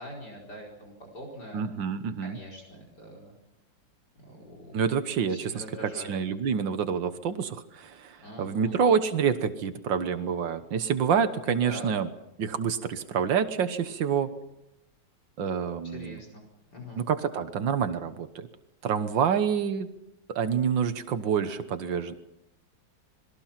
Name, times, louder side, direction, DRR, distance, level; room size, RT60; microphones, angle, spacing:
voice 1, 0.0-1.6 2.2-3.3 4.3-4.9 5.3-6.2 8.2-8.8 11.5-11.9 15.8-16.4 16.7-17.0, equal, 60° left, 0 dB, 5.3 m, -43 dB
voice 2, 1.5-2.4 4.7-5.6 6.0-12.1 12.4-14.3 15.4-16.2 17.0-18.5 18.8-19.9 20.3-22.1, right 7 dB, 85° right, 9 dB, 1.9 m, -27 dB
27.5 x 21.0 x 5.9 m, 0.87 s
omnidirectional pair, 2.0 m